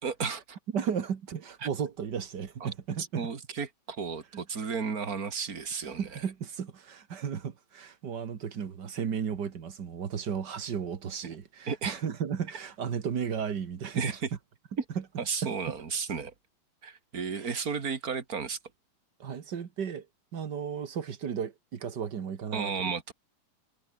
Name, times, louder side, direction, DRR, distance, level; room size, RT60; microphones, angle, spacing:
voice 1, 0.0-0.6 1.6-1.7 2.6-2.7 3.0-6.2 11.7-12.0 13.9-14.2 14.8-14.9 15.2-16.3 16.8-18.6 22.5-23.1, right 5 dB, 30° right, 1.9 m, -33 dB
voice 2, 0.7-3.2 6.0-14.2 15.4-15.5 17.4-17.6 19.2-20.1 20.3-22.7, right 7 dB, 70° right, 1.0 m, -34 dB
omnidirectional pair, 4.5 m